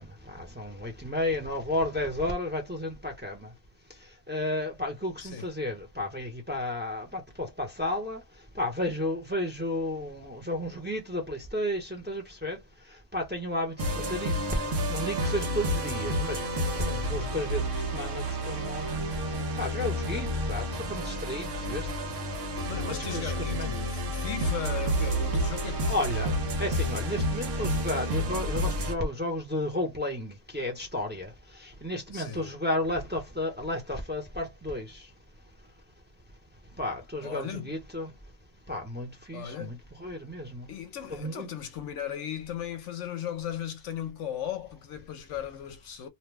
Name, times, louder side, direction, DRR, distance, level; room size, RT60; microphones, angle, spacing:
voice 1, 0.0-3.5 4.3-8.2 8.5-12.6 13.1-14.5 14.9-17.6 17.9-18.9 19.6-21.9 22.8-23.7 25.9-26.3 26.6-35.1 36.8-38.1 38.7-40.7 41.1-41.5, left 1 dB, 10° right, 0.8 m, -33 dB
sound 1, 13.8-28.9, equal, 75° right, 1.2 m, -30 dB
voice 2, 22.7-26.4 32.1-32.5 37.2-37.7 39.3-39.8 40.7-46.1, left 9 dB, 70° left, 0.9 m, -37 dB
2.8 x 2.2 x 3.3 m
omnidirectional pair, 1.3 m